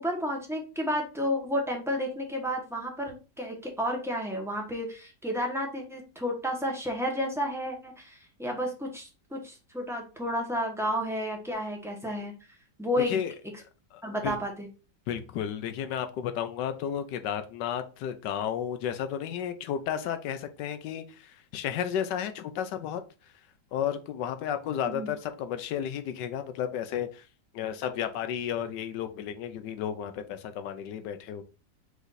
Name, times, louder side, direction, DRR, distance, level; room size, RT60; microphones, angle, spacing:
voice 1, 0.0-12.3 12.8-13.2 14.0-14.7 24.8-25.1, equal, ahead, 0.8 m, -31 dB
voice 2, 13.0-13.3 14.2-14.4 15.1-23.0 23.7-27.2 27.5-31.4, left 9 dB, 90° left, 1.3 m, -32 dB
5.0 x 2.6 x 4.0 m
omnidirectional pair, 1.8 m